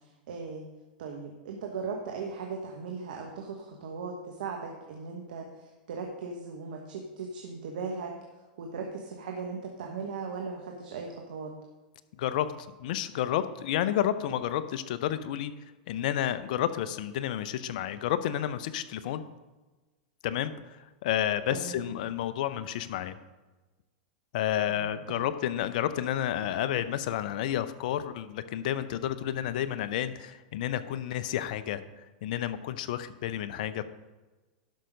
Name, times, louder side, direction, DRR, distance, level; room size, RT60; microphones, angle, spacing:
voice 1, 0.3-0.6 1.0-5.5 5.9-8.2 8.6-11.5 21.5-21.9 24.7-25.2, right 4 dB, 70° right, 2 dB, 1.3 m, -38 dB
voice 2, 12.2-12.5 12.8-15.5 15.9-19.2 20.2-20.5 21.0-23.2 24.3-31.8 32.2-33.8, left 11 dB, 60° left, 13 dB, 0.7 m, -30 dB
11.5 x 5.7 x 5.3 m, 1.2 s
hypercardioid pair, 105°, 5 cm